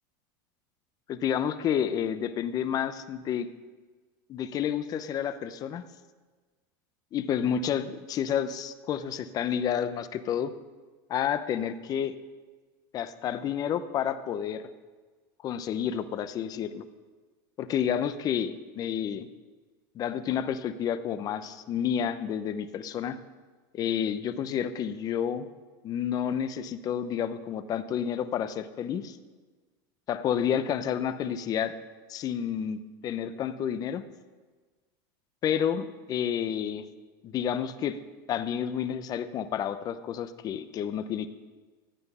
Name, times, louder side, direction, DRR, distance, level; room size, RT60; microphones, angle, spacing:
voice 1, 1.1-3.5 4.3-5.8 7.1-10.5 11.1-12.1 12.9-14.7 15.4-16.8 17.6-19.3 19.9-23.2 23.7-25.5 25.8-29.2 30.1-31.8 32.1-34.0 35.4-36.9 37.2-38.0 38.3-41.3, left 9 dB, 35° left, 12 dB, 0.8 m, -30 dB
15.5 x 9.6 x 5.6 m, 1.4 s
supercardioid pair, 135°, 11 cm